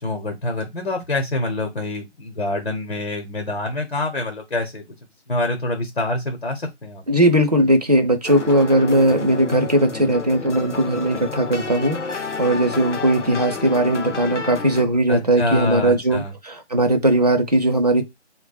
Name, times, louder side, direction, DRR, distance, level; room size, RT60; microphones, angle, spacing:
voice 1, 0.0-4.8 5.3-7.0 15.1-16.3, left 2 dB, 50° left, 0.9 m, -26 dB
voice 2, 7.1-18.0, right 1 dB, 35° right, 0.5 m, -19 dB
sound 1, 8.2-14.8, left 4 dB, 85° left, 0.8 m, -30 dB
3.1 x 2.2 x 4.0 m
figure-of-eight pair, 160°, 35 cm